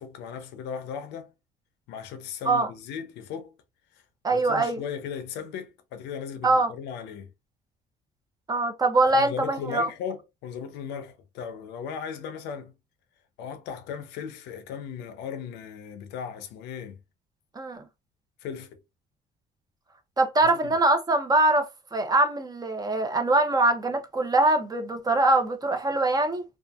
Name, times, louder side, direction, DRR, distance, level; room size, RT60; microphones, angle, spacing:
voice 1, 0.0-1.3 1.9-3.5 3.9-4.0 4.3-7.3 9.1-12.7 13.4-17.0 18.4-18.8 20.5-20.8, left 7 dB, 90° left, 0.6 m, -37 dB
voice 2, 4.2-4.8 6.4-6.7 8.5-9.9 17.6-17.8 20.2-26.4, right 2 dB, 20° right, 0.6 m, -23 dB
2.7 x 2.4 x 2.3 m
cardioid pair, 110°, 17 cm